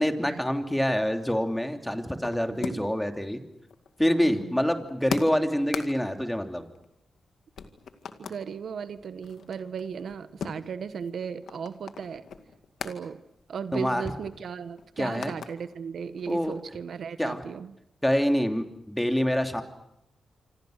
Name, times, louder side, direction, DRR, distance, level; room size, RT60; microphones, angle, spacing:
voice 1, 0.0-3.4 4.0-6.6 13.7-14.0 15.0-15.3 16.3-16.6 17.2-17.4 18.0-19.6, equal, 5° left, 5 dB, 2.9 m, -26 dB
sound 1, 1.2-3.1 3.3-7.3 7.6-8.4 8.9-13.0 13.4-13.5 13.8-15.5 15.9-16.8, left 6 dB, 80° left, 2.1 m, -40 dB
voice 2, 2.5-2.9 4.2-4.7 8.2-12.3 12.8-13.2 13.5-17.7, right 6 dB, 75° right, 12 dB, 1.1 m, -36 dB
26.5 x 26.0 x 6.5 m, 0.85 s
cardioid pair, 75°, 0 cm